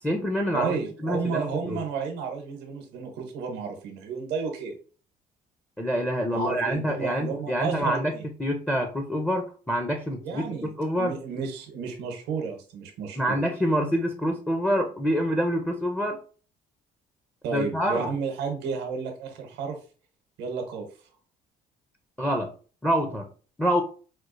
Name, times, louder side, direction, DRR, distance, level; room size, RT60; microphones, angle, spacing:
voice 1, 0.0-1.8 5.8-8.1 8.4-10.4 10.8-11.1 13.2-16.2 17.5-18.1 22.2-22.5 22.8-23.3 23.6-23.8, equal, 5° left, 3 dB, 0.5 m, -26 dB
voice 2, 0.5-4.8 6.3-8.2 10.2-10.7 11.0-13.4 17.4-19.8 20.4-20.9, right 5 dB, 85° right, 3 dB, 0.9 m, -32 dB
4.3 x 2.4 x 2.5 m, 0.39 s
cardioid pair, 110°, 17 cm